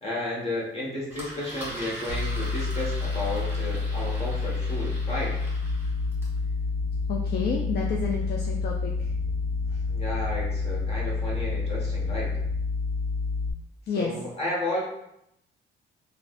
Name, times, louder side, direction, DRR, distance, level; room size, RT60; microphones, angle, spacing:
voice 1, 0.0-5.4 9.9-12.3 13.9-14.8, left 1 dB, 30° left, -5 dB, 1.3 m, -32 dB
Engine, 1.1-6.4, equal, 10° right, 1.5 m, -41 dB
sound 1, 2.1-13.5, left 4 dB, 40° right, 0.7 m, -29 dB
sound 2, 5.5-13.0, equal, 75° right, 0.5 m, -43 dB
voice 2, 7.1-8.9 13.9-14.1, left 5 dB, 55° left, 0 dB, 0.4 m, -29 dB
3.3 x 2.4 x 2.5 m, 0.78 s
cardioid pair, 90°, 20 cm